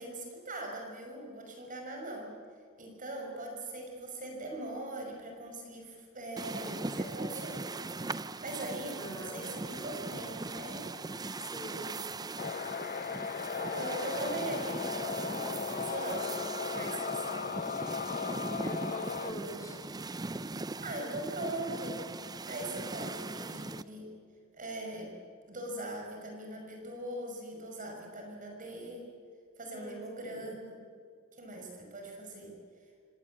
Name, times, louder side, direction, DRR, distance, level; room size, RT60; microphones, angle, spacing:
voice 1, 0.0-2.4 2.8-7.8 8.2-10.9 13.5-17.6 20.8-22.1 22.5-24.1 24.6-25.1 25.5-29.1 29.6-30.6 31.4-32.5, right 1 dB, 40° right, 1 dB, 5.8 m, -41 dB
sound 1, 6.4-23.8, right 3 dB, 20° right, 0.5 m, -40 dB
voice 2, 9.0-9.5 11.4-12.0 18.6-19.8 29.7-30.7, equal, 15° left, 0 dB, 4.1 m, -44 dB
sound 2, 12.4-19.3, left 6 dB, 45° left, 0.5 m, -37 dB
27.5 x 18.0 x 8.6 m, 2.1 s
head